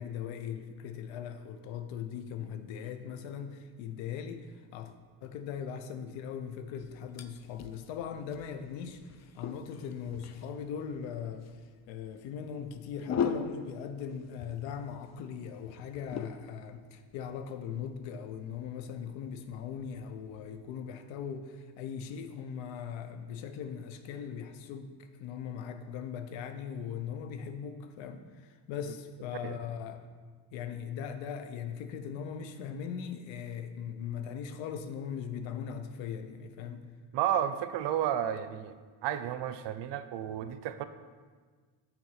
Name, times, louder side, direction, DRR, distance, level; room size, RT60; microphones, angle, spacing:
voice 1, 0.0-4.9 5.2-9.0 9.4-11.4 11.9-30.0 30.5-36.8, left 7 dB, 75° left, 8 dB, 0.8 m, -39 dB
sound 1, 6.8-20.8, left 6 dB, 35° left, 0.5 m, -42 dB
voice 2, 37.1-38.8 39.0-40.8, right 10 dB, 65° right, 11 dB, 0.6 m, -32 dB
6.7 x 4.3 x 5.8 m, 1.5 s
supercardioid pair, 70°, 46 cm